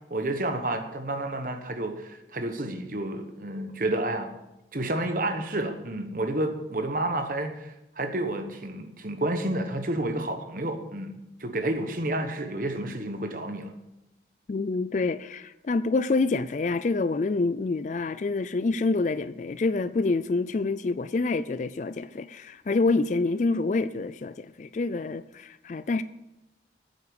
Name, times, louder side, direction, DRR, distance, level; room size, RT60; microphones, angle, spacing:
voice 1, 0.1-4.3 4.7-13.7, right 1 dB, 50° right, 1.1 m, -30 dB
voice 2, 14.5-26.0, left 3 dB, 40° left, 0.4 m, -27 dB
9.4 x 8.2 x 7.0 m
head